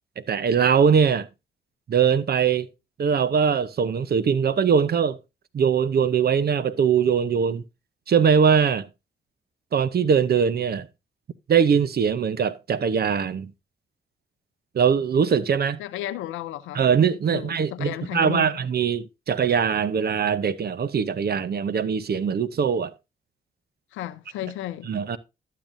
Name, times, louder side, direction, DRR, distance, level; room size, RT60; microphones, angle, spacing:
voice 1, 0.2-1.3 1.9-2.7 3.0-5.2 5.5-7.6 8.1-8.9 9.7-10.9 11.5-13.5 14.7-15.8 16.7-22.9 24.9-25.2, right 7 dB, 55° right, 0.7 m, -21 dB
voice 2, 15.8-16.8 17.3-18.6 23.9-24.9, left 13 dB, 90° left, 0.6 m, -33 dB
12.0 x 7.5 x 2.6 m
supercardioid pair, 50°, 20 cm